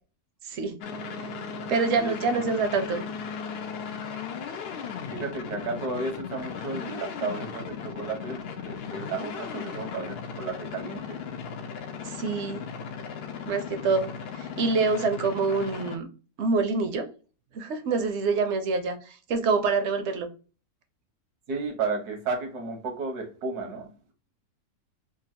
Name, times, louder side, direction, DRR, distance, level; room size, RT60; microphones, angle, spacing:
voice 1, 0.4-0.8 1.7-3.0 12.0-12.6 13.4-16.1 16.4-17.1 17.5-20.3, right 4 dB, 65° right, 0.7 m, -26 dB
sound 1, 0.8-16.0, left 6 dB, 90° left, 0.5 m, -37 dB
voice 2, 2.0-2.6 5.1-11.2 21.5-23.9, right 3 dB, 85° right, 1.5 m, -33 dB
3.7 x 2.4 x 2.7 m
omnidirectional pair, 1.6 m